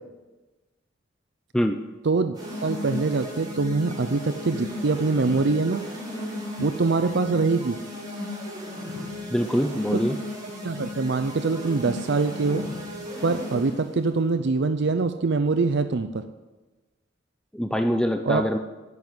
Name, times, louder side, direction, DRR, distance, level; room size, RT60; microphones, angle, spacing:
voice 1, 2.0-2.4 2.6-5.8 6.6-7.8 9.9-10.0 10.6-12.7 13.2-16.3 18.2-18.5, right 3 dB, 60° right, 10 dB, 0.6 m, -24 dB
sound 1, 2.3-13.9, left 1 dB, 20° right, 4.3 m, -35 dB
voice 2, 9.3-10.2 17.5-18.6, equal, 5° left, 6 dB, 0.5 m, -24 dB
11.0 x 9.4 x 7.7 m, 1.2 s
head